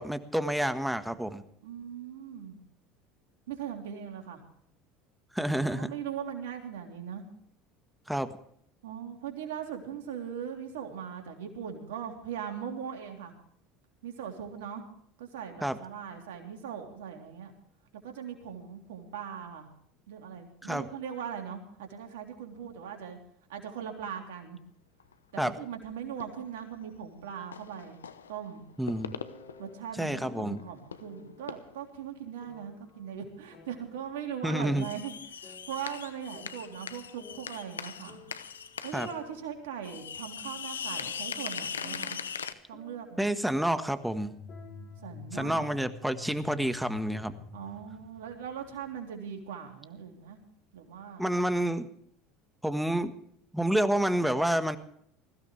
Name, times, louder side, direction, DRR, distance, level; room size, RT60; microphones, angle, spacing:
voice 1, 0.0-1.4 5.3-5.9 8.1-8.3 15.6-15.8 20.6-20.9 25.4-25.5 28.8-29.2 30.0-30.6 34.4-34.9 38.9-39.1 43.2-44.3 45.3-47.3 51.2-51.9 52.6-53.1 53.5-54.8, right 1 dB, 5° right, 10 dB, 1.5 m, -29 dB
voice 2, 1.6-2.6 3.5-4.4 5.6-7.2 8.8-13.3 14.0-14.9 15.2-17.5 18.0-19.7 20.1-23.2 23.5-24.6 25.3-28.0 28.3-28.7 29.6-38.2 38.8-42.2 42.7-43.3 45.0-45.7 47.5-50.4 50.7-51.4, right 8 dB, 75° right, 3 dB, 3.5 m, -40 dB
sound 1, 24.4-24.5 25.0-25.1 26.2-26.8 27.5-28.4 28.7-29.9 30.3-30.4 30.6-31.2 31.5-31.9 33.5-33.6 34.7-39.2 39.5-39.6 39.8-42.5, left 7 dB, 85° left, 0.9 m, -40 dB
sound 2, 29.1-30.6 31.0-31.5 32.4-34.1 34.5-36.1 36.3-38.6 39.0-41.4 41.8-45.9 46.2-46.6 47.1-48.1, left 3 dB, 45° left, 5.1 m, -54 dB
sound 3, 44.2-49.0, left 3 dB, 65° left, 4.4 m, -47 dB
21.0 x 16.0 x 3.4 m, 0.68 s
hypercardioid pair, 70°, 0 cm